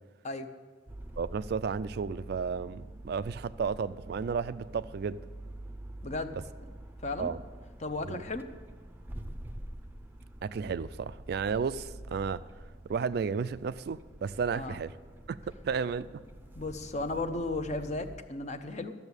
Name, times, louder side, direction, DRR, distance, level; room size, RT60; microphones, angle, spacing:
sound 1, 0.9-18.2, right 1 dB, 10° right, 0.6 m, -46 dB
voice 1, 1.2-5.2 7.2-7.4 8.1-8.2 10.4-12.5 12.9-14.9 15.3-15.4 15.6-16.2, right 5 dB, 55° right, 15 dB, 0.3 m, -33 dB
voice 2, 6.0-6.3 7.0-7.3 7.8-8.5 14.5-14.8 16.6-18.9, left 2 dB, 40° left, 8 dB, 0.8 m, -35 dB
12.5 x 7.0 x 8.2 m, 1.5 s
head